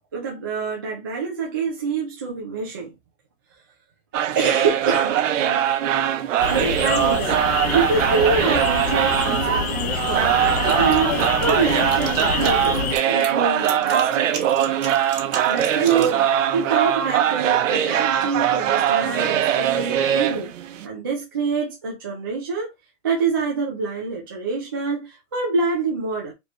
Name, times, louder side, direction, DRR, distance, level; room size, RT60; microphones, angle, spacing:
voice 1, 0.1-2.9 4.3-5.6 6.5-14.5 15.5-20.5 20.8-22.7 23.0-26.3, right 5 dB, 20° right, 0.4 m, -26 dB
sound 1, 4.1-20.9, right 10 dB, 90° right, 0.8 m, -21 dB
sound 2, 6.4-13.0, left 8 dB, 55° left, 0.7 m, -27 dB
sound 3, 10.7-16.1, right 5 dB, 60° right, 1.8 m, -36 dB
4.2 x 2.9 x 3.1 m
supercardioid pair, 175°, 37 cm